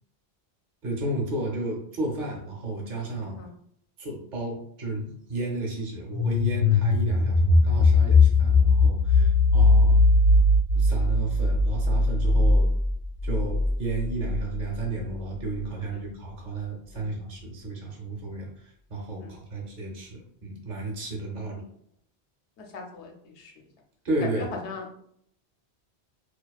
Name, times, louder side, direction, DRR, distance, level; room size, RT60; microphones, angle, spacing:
voice 1, 0.8-3.5 4.0-10.0 10.7-12.7 13.2-18.5 18.9-21.6 24.0-24.5, right 2 dB, 50° right, -1 dB, 0.8 m, -32 dB
sound 1, 6.1-14.8, left 2 dB, 55° left, 0.6 m, -20 dB
voice 2, 22.6-23.5 24.2-25.0, left 4 dB, 85° left, 2 dB, 0.9 m, -40 dB
2.3 x 2.3 x 2.3 m, 0.67 s
omnidirectional pair, 1.1 m